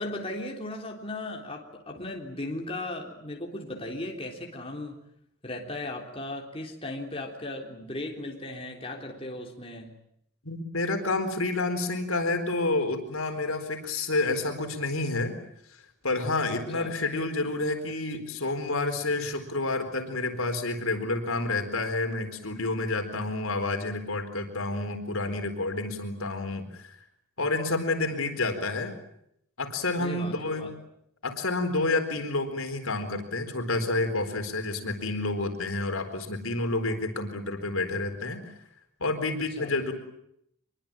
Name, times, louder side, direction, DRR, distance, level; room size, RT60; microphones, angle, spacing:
voice 1, 0.0-5.0 5.4-9.9 16.5-16.9 30.0-30.7 39.6-39.7, left 1 dB, 25° left, 1 dB, 3.6 m, -37 dB
voice 2, 10.4-15.4 15.7-27.0 27.4-29.0 29.6-30.7 31.2-38.5 39.0-39.9, left 2 dB, 80° left, 6 dB, 4.2 m, -29 dB
25.0 x 23.0 x 8.9 m, 0.75 s
head